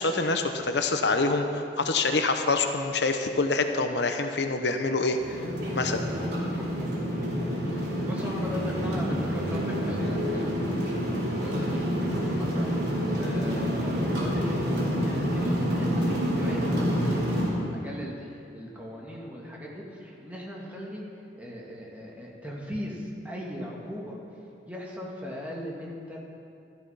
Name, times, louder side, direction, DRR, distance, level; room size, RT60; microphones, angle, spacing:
voice 1, 0.0-5.4 5.8-6.0, left 3 dB, 75° left, 6 dB, 0.9 m, -26 dB
sound 1, 5.2-17.5, equal, 65° right, 3.7 m, -28 dB
voice 2, 5.7-6.0 6.5-7.0 7.2-21.0 21.4-24.2 24.7-26.2, equal, 10° right, -3 dB, 1.9 m, -39 dB
13.0 x 12.0 x 5.7 m, 2.5 s
head